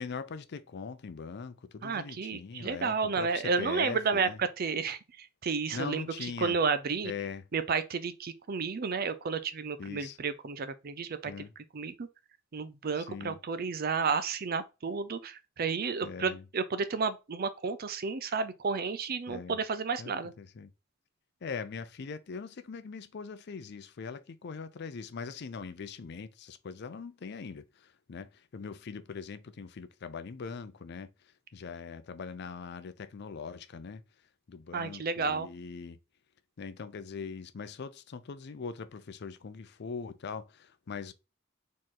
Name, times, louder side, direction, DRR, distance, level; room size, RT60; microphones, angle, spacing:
voice 1, 0.0-4.4 5.7-6.5 7.0-7.4 9.8-10.2 11.3-11.5 13.0-13.4 16.0-16.4 19.3-19.6 20.0-20.7 21.4-31.1 31.5-34.0 34.5-36.0 36.6-41.1, left 5 dB, 55° left, 0.5 m, -41 dB
voice 2, 1.8-7.1 7.5-11.5 11.7-12.1 12.5-20.3 34.7-35.5, right 5 dB, 50° right, 0.5 m, -32 dB
4.4 x 3.1 x 3.7 m
head